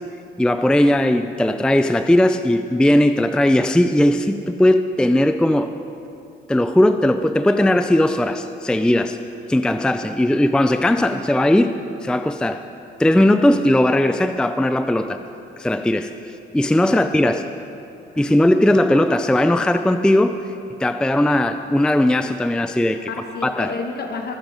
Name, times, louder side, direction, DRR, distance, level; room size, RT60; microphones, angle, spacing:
voice 1, 0.4-5.8 6.5-9.2 9.5-12.6 13.0-15.2 15.6-17.4 18.2-20.4 20.8-23.0 23.4-23.7, left 1 dB, 5° left, 9 dB, 0.4 m, -18 dB
voice 2, 16.8-17.5 18.1-18.4 23.1-24.4, left 4 dB, 55° left, 3 dB, 1.3 m, -31 dB
23.5 x 7.8 x 5.2 m, 2.8 s
cardioid pair, 90°, 20 cm